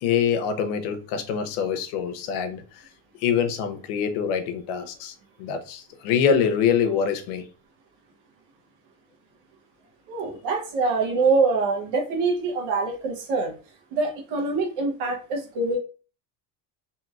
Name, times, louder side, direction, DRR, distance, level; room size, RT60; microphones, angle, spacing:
voice 1, 0.0-2.8 3.2-7.5, left 7 dB, 90° left, 0.7 m, -25 dB
voice 2, 10.1-13.5 13.9-15.8, right 3 dB, 75° right, 1.0 m, -24 dB
2.9 x 2.8 x 2.3 m
supercardioid pair, 115°, 43 cm